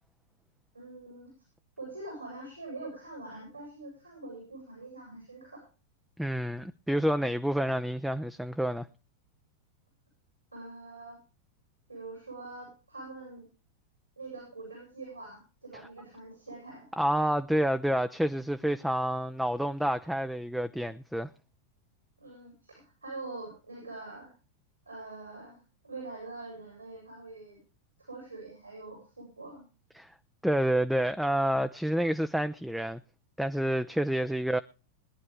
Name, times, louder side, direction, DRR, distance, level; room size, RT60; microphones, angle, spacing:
voice 1, 0.7-1.3 1.8-5.6 10.5-11.2 11.9-13.5 14.2-16.9 22.2-24.3 24.9-25.6 25.8-27.6 28.0-29.6, right 2 dB, 80° right, 7.4 m, -44 dB
voice 2, 6.2-8.9 17.0-21.3 30.0-30.1 30.4-33.0 33.4-34.6, equal, ahead, 0.5 m, -28 dB
21.0 x 11.0 x 3.5 m
figure-of-eight pair, 90°, 0 cm